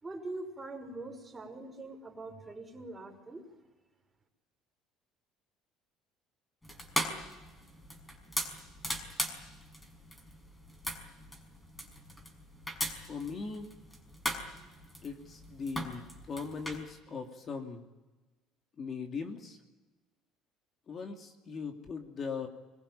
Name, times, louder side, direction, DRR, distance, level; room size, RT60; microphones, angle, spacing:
voice 1, 0.0-3.6, right 2 dB, 15° right, 3 dB, 5.7 m, -43 dB
sound 1, 6.6-16.8, equal, 10° left, 5.6 m, -39 dB
voice 2, 13.1-13.7 15.0-17.8 18.8-19.6 20.9-22.5, left 5 dB, 40° left, 3 dB, 2.8 m, -39 dB
25.0 x 22.5 x 9.1 m, 1.2 s
supercardioid pair, 105°, 0 cm